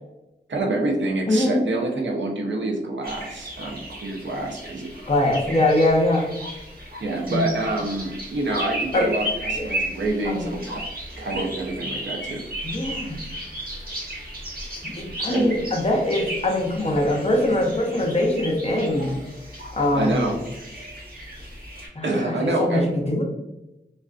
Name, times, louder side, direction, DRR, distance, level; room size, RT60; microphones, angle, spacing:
voice 1, 0.5-4.9 7.0-10.8 11.2-12.4 15.3-15.5 19.9-20.4 22.0-22.9, right 2 dB, 80° right, 1 dB, 0.5 m, -27 dB
voice 2, 1.3-1.6 5.1-6.3 7.3-7.4 8.9-9.1 9.5-9.7 10.2-10.5 12.6-13.2 14.8-19.1 19.7-20.3 21.9-23.2, left 1 dB, 35° left, 0 dB, 0.6 m, -22 dB
sound 1, 3.0-21.9, right 1 dB, 55° right, 0.9 m, -35 dB
2.4 x 2.3 x 2.3 m, 0.96 s
wide cardioid pair, 65°, 19 cm